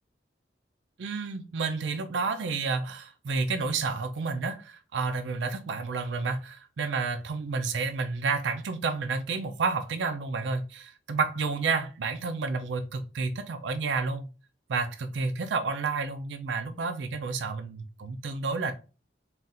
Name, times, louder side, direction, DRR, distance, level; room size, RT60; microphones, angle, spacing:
voice 1, 1.0-14.3 14.7-18.7, right 4 dB, 90° right, 8 dB, 0.4 m, -30 dB
3.7 x 2.4 x 4.0 m, 0.33 s
head